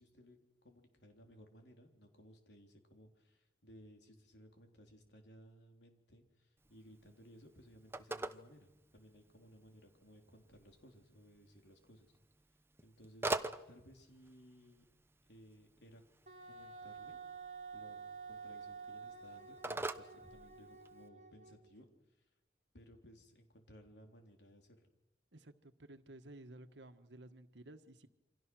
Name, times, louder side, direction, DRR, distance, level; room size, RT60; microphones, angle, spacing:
voice 1, 0.0-12.2 12.8-13.3 13.7-14.9 15.3-16.0 16.5-17.2 17.7-18.0 18.3-21.9 22.2-22.3 22.7-24.8, equal, 75° left, 3 dB, 3.7 m, -60 dB
Telephone, 6.6-21.1, right 2 dB, 15° right, 0.8 m, -47 dB
Wind instrument woodwind instrument, 16.3-21.7, right 5 dB, 45° right, 3.2 m, -50 dB
voice 2, 25.3-28.1, right 1 dB, 85° right, 9 dB, 1.5 m, -55 dB
28.5 x 25.0 x 6.3 m, 0.97 s
head